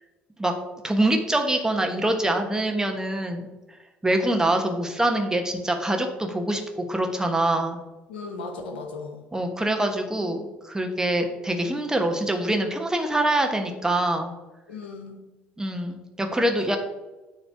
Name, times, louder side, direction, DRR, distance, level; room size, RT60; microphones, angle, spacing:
voice 1, 0.8-3.5 4.0-7.8 9.3-14.3 15.6-16.8, right 1 dB, 10° right, 4 dB, 1.2 m, -24 dB
voice 2, 8.1-9.2 14.7-15.2, left 3 dB, 85° left, 3 dB, 1.0 m, -36 dB
8.9 x 3.2 x 4.6 m, 1.1 s
hypercardioid pair, 60°, 6 cm